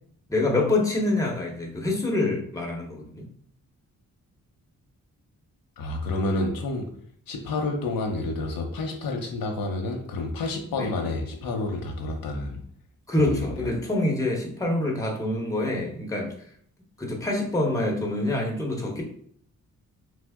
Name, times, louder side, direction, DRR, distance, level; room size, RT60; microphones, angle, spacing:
voice 1, 0.3-3.3 10.8-10.9 13.1-16.3 17.0-19.0, left 2 dB, 10° left, -1 dB, 0.9 m, -26 dB
voice 2, 5.8-6.9 7.3-12.6 13.2-13.7, left 2 dB, 80° left, 2 dB, 0.7 m, -29 dB
3.2 x 2.0 x 3.5 m, 0.63 s
cardioid pair, 75°, 34 cm